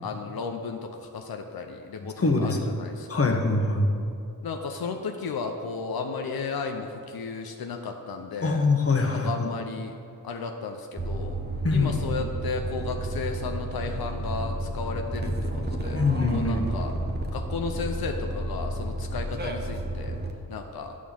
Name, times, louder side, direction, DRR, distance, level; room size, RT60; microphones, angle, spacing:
voice 1, 0.0-3.4 4.4-8.7 9.1-9.9 10.2-11.4 11.7-16.0 16.3-16.9 17.3-20.2 20.5-21.0, left 4 dB, 90° left, 4 dB, 0.6 m, -34 dB
voice 2, 2.2-2.7 3.1-4.0 8.4-9.5 11.6-12.0 15.9-16.6, left 3 dB, 40° left, 3 dB, 1.0 m, -24 dB
sound 1, 11.0-20.3, right 1 dB, 30° right, 0.8 m, -31 dB
9.4 x 3.7 x 7.0 m, 2.5 s
wide cardioid pair, 70°, 35 cm